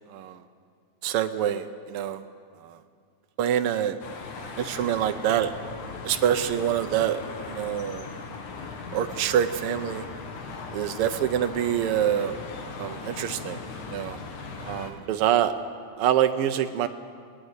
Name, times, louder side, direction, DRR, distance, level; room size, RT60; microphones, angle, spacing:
voice 1, 0.1-0.4 1.0-2.2 2.6-2.8 3.4-4.0 4.4-5.5 6.0-8.1 8.9-10.0 10.7-12.3 12.8-13.6 13.9-14.2 14.6-15.5 16.0-16.9, right 10 dB, 85° right, 8 dB, 1.2 m, -26 dB
sound 1, 4.0-14.9, left 4 dB, 85° left, 3.3 m, -38 dB
20.0 x 19.0 x 8.1 m, 2.1 s
omnidirectional pair, 3.5 m